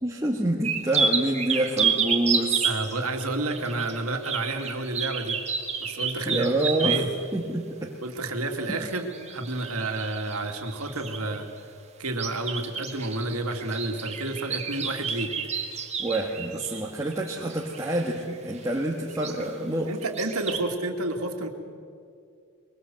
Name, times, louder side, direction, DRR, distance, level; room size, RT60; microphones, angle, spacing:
voice 1, 0.0-2.7 6.2-7.9 16.0-19.9, right 1 dB, 15° right, -2 dB, 1.8 m, -27 dB
sound 1, 0.6-7.2 8.8-11.4 12.0-18.2 18.5-18.8 19.1-19.5 20.0-20.6, right 6 dB, 30° right, 2.2 m, -30 dB
voice 2, 2.6-5.4 5.8-6.5 6.8-7.1 8.0-11.5 12.0-15.3 19.9-21.5, right 2 dB, 90° right, 4 dB, 2.7 m, -30 dB
24.0 x 23.0 x 7.9 m, 2.3 s
head